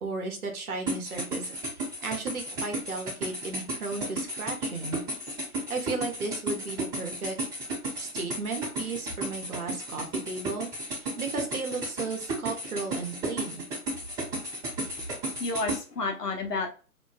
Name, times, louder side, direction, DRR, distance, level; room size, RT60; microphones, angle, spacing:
voice 1, 0.0-1.4 2.0-5.0 5.5-7.4 7.9-13.6, right 3 dB, 65° right, 3 dB, 0.9 m, -35 dB
sound 1, 0.9-15.8, right 1 dB, 10° right, 1.0 m, -33 dB
voice 2, 15.4-16.7, left 3 dB, 85° left, 3 dB, 0.8 m, -31 dB
2.6 x 2.2 x 2.3 m, 0.37 s
figure-of-eight pair, 140°, 47 cm